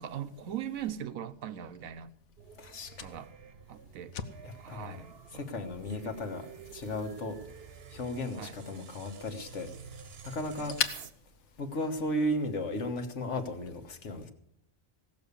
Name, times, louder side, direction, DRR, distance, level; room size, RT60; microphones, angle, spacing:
voice 1, 0.0-2.1 3.0-3.3 3.7-4.2 4.6-5.5 6.0-6.1 8.4-8.6 10.6-10.7, right 10 dB, 85° right, 1.2 m, -40 dB
Fire, 0.8-12.3, left 7 dB, 85° left, 1.4 m, -44 dB
sound 1, 2.4-11.1, right 6 dB, 50° right, 1.1 m, -50 dB
voice 2, 2.6-3.1 4.4-5.0 5.3-6.5 6.7-7.4 7.9-9.7 10.2-10.8 11.6-14.3, left 1 dB, 60° left, 1.6 m, -35 dB
17.0 x 7.0 x 8.2 m
omnidirectional pair, 1.4 m